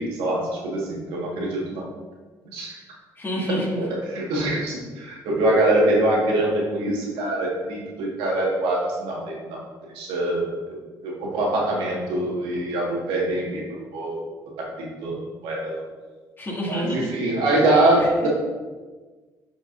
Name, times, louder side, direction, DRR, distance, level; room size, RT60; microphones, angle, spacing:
voice 1, 0.0-1.8 2.5-2.7 3.8-9.6 10.0-13.6 13.9-14.2 14.6-15.8 16.7-18.3, right 1 dB, 85° right, -3 dB, 1.8 m, -24 dB
voice 2, 3.2-3.8 16.4-17.1 18.0-18.1, equal, 25° left, -3 dB, 2.2 m, -27 dB
9.7 x 5.0 x 2.6 m, 1.3 s
supercardioid pair, 80°, 9 cm